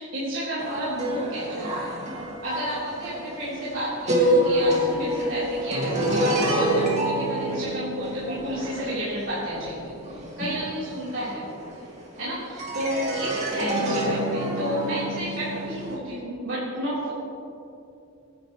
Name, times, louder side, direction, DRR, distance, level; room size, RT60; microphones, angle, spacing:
voice 1, 0.0-2.0 2.4-11.6 12.2-17.1, equal, 75° right, -11 dB, 3.9 m, -31 dB
sound 1, 0.6-12.2 12.6-15.9, right 1 dB, 35° right, 2.3 m, -27 dB
22.5 x 11.0 x 3.2 m, 2.6 s
head